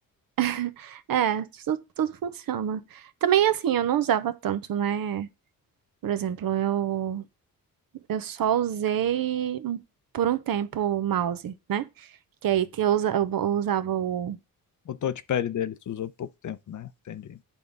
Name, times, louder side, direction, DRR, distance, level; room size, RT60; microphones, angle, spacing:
voice 1, 0.4-5.3 6.0-7.2 8.1-9.8 10.1-11.9 12.4-14.4, right 10 dB, 75° right, 0.8 m, -26 dB
voice 2, 14.9-17.4, left 9 dB, 60° left, 0.6 m, -32 dB
8.5 x 3.6 x 5.2 m
cardioid pair, 80°, 35 cm